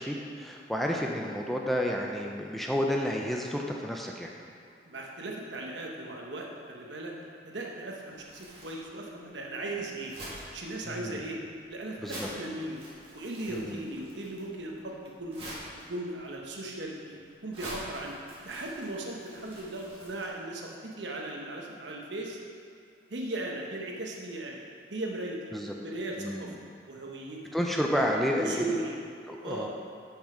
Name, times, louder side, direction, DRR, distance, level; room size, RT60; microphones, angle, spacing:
voice 1, 0.0-4.3 10.9-11.2 12.0-12.3 13.5-13.8 25.5-25.7 26.2-26.5 27.5-28.7 29.3-29.7, equal, ahead, 0 dB, 0.5 m, -30 dB
voice 2, 4.9-7.1 7.4-10.1 10.5-11.4 11.7-12.8 13.1-15.4 15.9-18.2 18.4-22.4 23.1-24.6 24.9-25.4 25.8-26.5 26.9-27.4 28.3-29.0 29.4-29.7, right 2 dB, 85° right, -1 dB, 1.1 m, -37 dB
Crumpling crinkling, 8.1-20.3, right 1 dB, 30° right, 1.8 m, -47 dB
6.5 x 6.4 x 4.9 m, 2.3 s
head